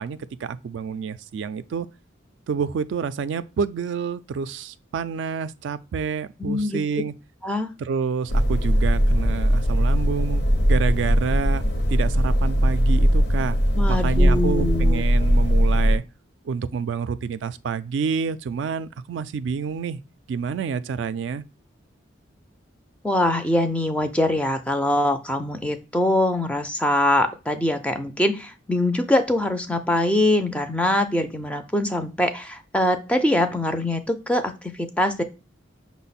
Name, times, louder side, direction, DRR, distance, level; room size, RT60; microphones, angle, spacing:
voice 1, 0.0-1.9 2.5-7.1 7.8-10.4 10.7-13.6 13.9-16.0 16.4-20.0 20.3-21.4, right 6 dB, 70° right, 0.3 m, -28 dB
voice 2, 6.4-6.8 7.4-7.7 13.7-15.0 23.0-35.2, left 1 dB, 5° left, 0.4 m, -23 dB
sound 1, 8.3-16.0, equal, 60° left, 0.7 m, -20 dB
5.8 x 2.1 x 4.0 m
head